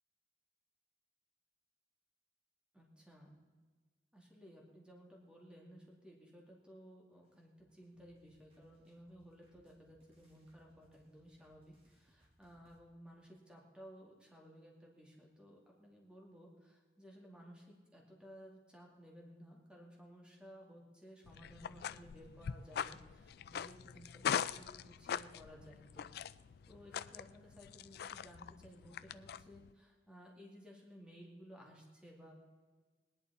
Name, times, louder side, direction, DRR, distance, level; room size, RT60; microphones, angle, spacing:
voice 1, 2.7-3.4 4.1-26.1 26.7-32.3, equal, 5° right, -2 dB, 2.3 m, -57 dB
sound 1, 7.2-12.8, equal, 35° right, 2.3 m, -72 dB
sound 2, 21.3-29.7, left 8 dB, 60° left, 0.3 m, -42 dB
19.0 x 11.0 x 4.2 m, 1.4 s
head